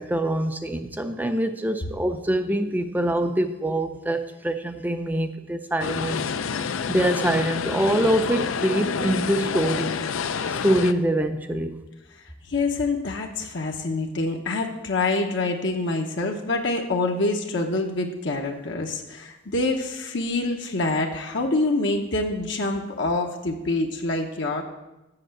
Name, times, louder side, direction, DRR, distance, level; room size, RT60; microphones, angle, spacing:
voice 1, 0.0-6.2 6.9-9.9 10.6-11.8, right 1 dB, 10° right, 7 dB, 0.4 m, -24 dB
sound 1, 5.8-10.9, left 6 dB, 80° left, 0.5 m, -28 dB
voice 2, 12.2-24.6, left 2 dB, 65° left, 1 dB, 0.9 m, -26 dB
7.8 x 6.7 x 7.6 m, 1.0 s
head